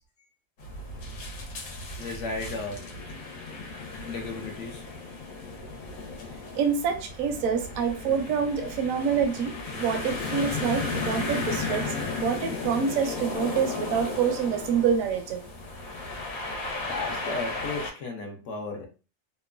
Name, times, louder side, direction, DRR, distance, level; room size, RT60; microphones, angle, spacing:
sound 1, 0.6-17.9, left 3 dB, 85° left, 1.2 m, -35 dB
voice 1, 2.0-2.9 4.0-4.8 16.9-18.9, left 3 dB, 65° left, 1.0 m, -34 dB
voice 2, 6.5-11.9 12.2-15.5, right 7 dB, 80° right, 1.0 m, -27 dB
3.0 x 2.1 x 2.3 m
omnidirectional pair, 1.4 m